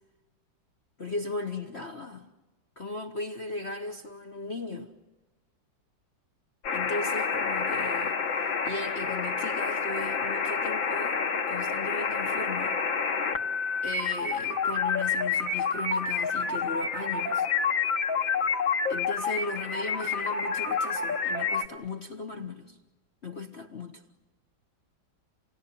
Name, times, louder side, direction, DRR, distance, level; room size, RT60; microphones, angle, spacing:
voice 1, 1.0-2.3 2.8-4.9 6.7-11.2 11.5-12.8 13.8-17.5 18.9-22.8 23.2-24.0, left 2 dB, 40° left, 1.4 m, -37 dB
sound 1, 6.6-21.7, left 5 dB, 75° left, 2.4 m, -28 dB
30.0 x 19.0 x 9.9 m
omnidirectional pair, 2.1 m